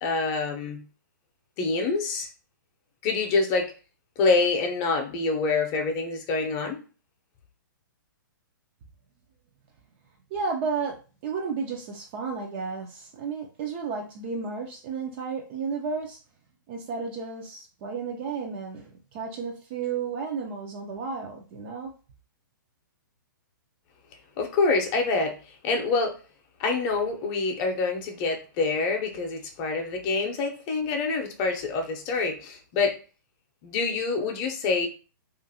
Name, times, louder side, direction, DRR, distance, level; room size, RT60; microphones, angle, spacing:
voice 1, 0.0-0.8 1.6-2.3 3.0-3.7 4.2-6.8 24.4-26.2 26.6-32.9 33.6-34.9, left 4 dB, 30° left, 3 dB, 0.6 m, -26 dB
voice 2, 10.3-16.2 16.7-21.9, right 5 dB, 35° right, 1 dB, 0.4 m, -33 dB
2.6 x 2.5 x 2.7 m, 0.35 s
hypercardioid pair, 135°, 11 cm